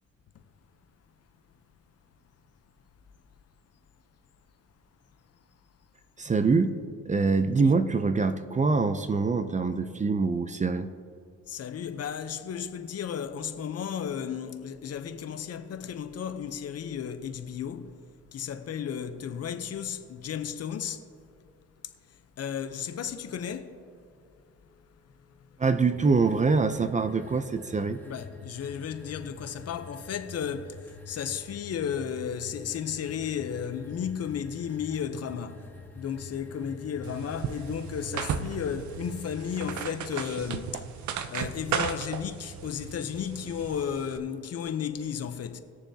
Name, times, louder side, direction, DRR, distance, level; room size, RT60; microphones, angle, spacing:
voice 1, 6.2-6.8 7.1-10.9 25.6-28.0, right 4 dB, 25° right, 0.5 m, -24 dB
voice 2, 11.5-17.9 18.3-21.0 22.4-23.8 28.0-30.8 31.1-35.6 35.9-40.8 41.3-45.6, left 8 dB, 55° left, 0.8 m, -34 dB
sound 1, 25.9-39.6, left 4 dB, 5° left, 1.4 m, -47 dB
sound 2, 37.0-44.2, right 7 dB, 70° right, 0.7 m, -35 dB
19.5 x 6.9 x 2.8 m
cardioid pair, 90°, 30 cm